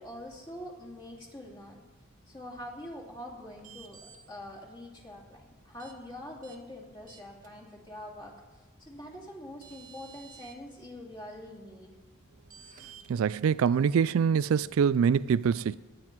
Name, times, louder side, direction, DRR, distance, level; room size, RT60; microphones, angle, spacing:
voice 1, 0.0-1.8 2.3-8.3 8.8-11.9, left 1 dB, 25° left, 2.5 m, -44 dB
sound 1, 3.6-4.2 5.8-5.9 6.4-6.6 7.1-7.5 9.1-9.2 9.6-10.5 12.5-13.0, right 7 dB, 40° right, 1.4 m, -51 dB
voice 2, 13.1-15.8, right 7 dB, 80° right, 0.3 m, -24 dB
18.5 x 9.2 x 4.6 m
head